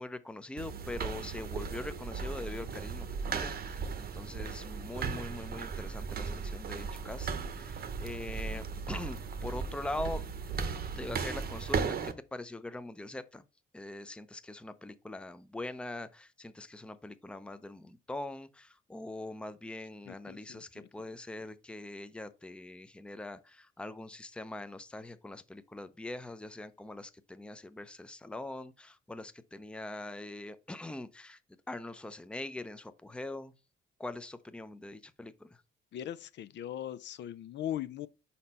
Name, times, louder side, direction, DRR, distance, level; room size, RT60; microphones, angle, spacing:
voice 1, 0.0-10.2 11.0-13.4 13.7-31.4 31.7-33.5 34.0-35.6, left 2 dB, 5° left, 0.5 m, -42 dB
sound 1, 0.6-12.1, right 5 dB, 50° right, 0.8 m, -37 dB
voice 2, 20.1-20.6 35.9-38.1, left 11 dB, 65° left, 0.4 m, -39 dB
5.3 x 4.3 x 4.1 m
cardioid pair, 90°, 20 cm